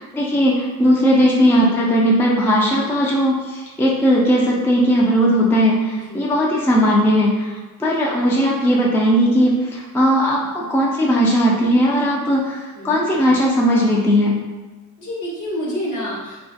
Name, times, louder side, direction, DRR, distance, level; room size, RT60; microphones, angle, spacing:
voice 1, 0.0-7.5 7.8-14.4, equal, 5° left, -3 dB, 0.4 m, -17 dB
voice 2, 15.0-16.4, equal, 55° left, -4 dB, 0.9 m, -28 dB
2.4 x 2.3 x 2.5 m, 1.2 s
cardioid pair, 75°, 36 cm